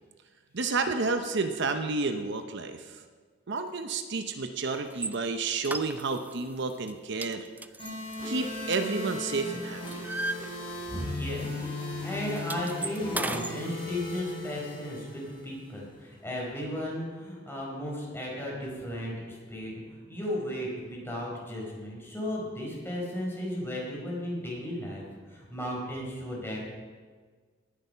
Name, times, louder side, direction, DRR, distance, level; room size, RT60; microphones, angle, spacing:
voice 1, 0.5-2.8 3.5-7.5 8.2-10.0, right 4 dB, 65° right, 7 dB, 0.8 m, -30 dB
sound 1, 4.9-5.2 5.6-6.4 6.7-6.9 7.2-9.3 9.6-11.1 11.3-11.5 11.8-13.6, right 2 dB, 10° right, 0.4 m, -36 dB
sound 2, 7.8-15.8, left 2 dB, 30° left, 4.7 m, -37 dB
voice 2, 10.9-11.5 12.0-26.7, equal, 10° left, -4 dB, 4.5 m, -35 dB
18.5 x 8.6 x 5.7 m, 1.5 s
head